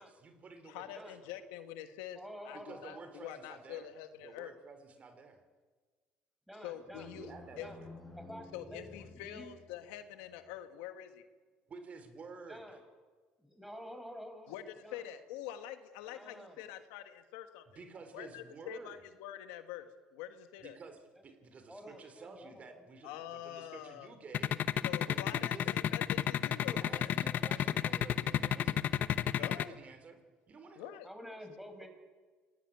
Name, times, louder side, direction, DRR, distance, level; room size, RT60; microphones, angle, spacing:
voice 1, 0.0-1.4 2.5-3.9 4.2-5.4 6.9-7.8 11.7-12.8 17.7-19.0 20.6-25.7 26.5-28.9 29.3-30.2 30.5-30.9, right 4 dB, 40° right, 8 dB, 3.4 m, -52 dB
voice 2, 0.6-2.2 2.4-4.5 6.6-7.3 7.6-7.7 8.5-11.2 14.5-17.6 18.1-20.8 23.0-24.2 24.8-27.2 29.3-29.8 30.8-31.1, left 12 dB, 90° left, 9 dB, 1.6 m, -46 dB
voice 3, 2.1-3.3 6.5-7.1 7.5-7.8 8.2-9.5 12.5-12.8 13.4-14.6 14.8-15.0 16.1-16.7 21.1-21.2 21.7-22.9 31.0-31.9, equal, 5° right, 6 dB, 5.7 m, -49 dB
sound 1, 6.9-9.9, left 2 dB, 15° left, 6.5 m, -53 dB
sound 2, 24.3-29.6, left 10 dB, 55° left, 0.9 m, -30 dB
26.0 x 19.5 x 9.2 m, 1.4 s
supercardioid pair, 90°, 4 cm